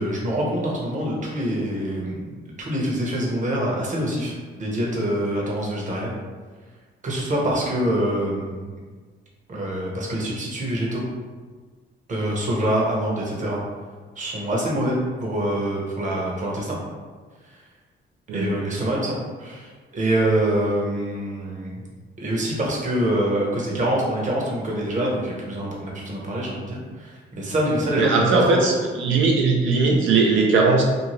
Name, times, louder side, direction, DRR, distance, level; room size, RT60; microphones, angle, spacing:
voice 1, 0.0-2.3 2.6-6.1 7.0-8.7 9.5-11.0 12.1-13.6 14.2-16.8 18.3-21.8 22.2-28.6, right 1 dB, 40° right, -3 dB, 0.9 m, -25 dB
voice 2, 28.0-28.7 29.0-30.8, right 3 dB, 75° right, -1 dB, 0.5 m, -19 dB
2.6 x 2.4 x 3.1 m, 1.4 s
cardioid pair, 90°, 20 cm